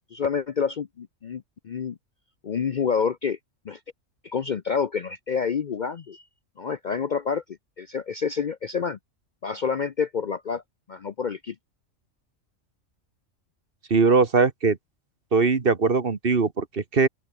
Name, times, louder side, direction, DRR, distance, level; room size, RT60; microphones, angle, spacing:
voice 1, 0.1-2.0 2.4-3.4 3.6-3.8 4.2-6.2 6.6-7.4 7.8-9.0 9.4-10.6 10.9-11.6, left 6 dB, 45° left, 0.6 m, -28 dB
voice 2, 13.9-14.8 15.3-17.1, right 4 dB, 45° right, 1.7 m, -21 dB
open air
omnidirectional pair, 1.3 m